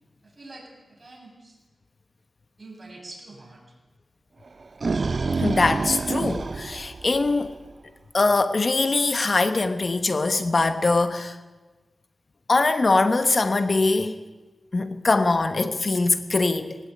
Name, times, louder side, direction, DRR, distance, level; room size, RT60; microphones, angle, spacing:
voice 1, 0.2-1.6 2.6-3.7, right 2 dB, 35° right, 7.7 m, -45 dB
sound 1, 4.5-7.7, right 4 dB, 55° right, 0.6 m, -27 dB
voice 2, 5.4-7.5 8.1-11.4 12.5-14.2 14.7-16.8, left 3 dB, 45° left, 1.1 m, -22 dB
21.0 x 17.0 x 9.4 m
wide cardioid pair, 85°, 0 cm